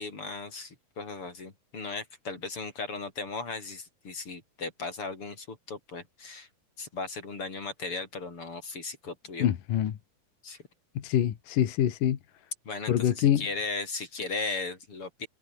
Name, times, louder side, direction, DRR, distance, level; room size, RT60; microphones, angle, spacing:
voice 1, 0.0-6.5 6.8-9.5 10.4-10.6 12.6-15.3, left 3 dB, 35° left, 4.9 m, -37 dB
voice 2, 9.4-10.0 11.0-12.2 12.9-13.5, left 10 dB, 65° left, 3.2 m, -25 dB
omnidirectional pair, 4.2 m